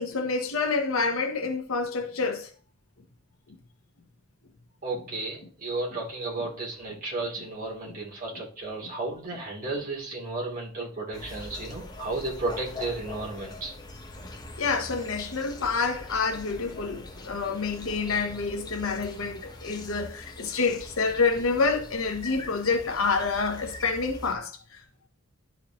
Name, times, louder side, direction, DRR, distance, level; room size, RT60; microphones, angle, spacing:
voice 1, 0.0-2.5 6.4-6.5 7.8-8.0 14.6-24.8, left 4 dB, 70° left, 0.9 m, -28 dB
voice 2, 4.8-13.7, right 2 dB, 40° right, 2.9 m, -33 dB
sound 1, 11.1-24.4, left 2 dB, 20° left, 1.0 m, -43 dB
12.0 x 4.6 x 2.9 m
head